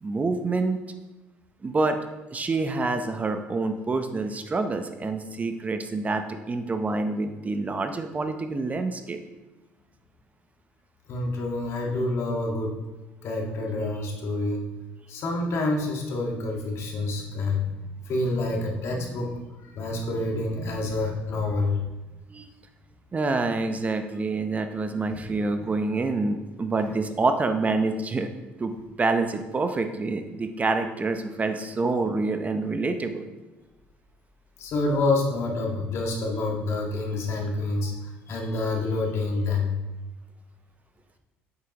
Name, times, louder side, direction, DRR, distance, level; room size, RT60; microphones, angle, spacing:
voice 1, 0.0-0.8 1.6-2.0 2.3-9.2 22.3-22.5 23.1-28.3 28.6-33.3, right 3 dB, 30° right, 8 dB, 0.7 m, -27 dB
voice 2, 11.1-12.7 13.2-14.6 15.1-17.7 18.1-19.3 19.6-21.8 25.1-25.7 34.6-37.9 38.3-39.8, left 2 dB, 65° left, 0 dB, 1.7 m, -27 dB
8.7 x 6.7 x 3.0 m, 1.1 s
supercardioid pair, 75°, 5 cm